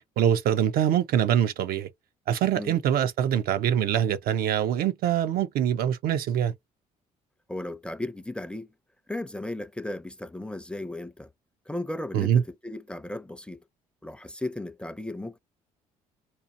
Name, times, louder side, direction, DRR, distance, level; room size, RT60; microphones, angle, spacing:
voice 1, 0.2-1.9 2.3-6.5 12.1-12.4, right 10 dB, 65° right, 0.5 m, -24 dB
voice 2, 7.5-8.7 9.1-11.3 11.7-13.6 14.0-15.4, left 1 dB, 5° left, 0.5 m, -35 dB
4.1 x 2.5 x 2.5 m
hypercardioid pair, 60°, 17 cm